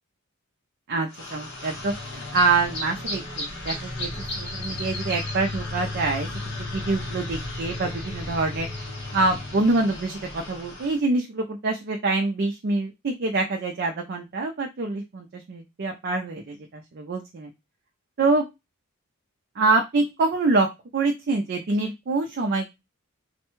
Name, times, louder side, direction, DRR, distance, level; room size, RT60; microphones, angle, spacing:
voice 1, 0.9-6.3 6.6-8.7 9.1-17.5 18.2-18.4 19.6-22.7, right 3 dB, 45° right, 3 dB, 0.4 m, -25 dB
sound 1, 1.1-11.0, left 2 dB, 55° left, 1.1 m, -34 dB
3.2 x 2.2 x 3.0 m, 0.21 s
head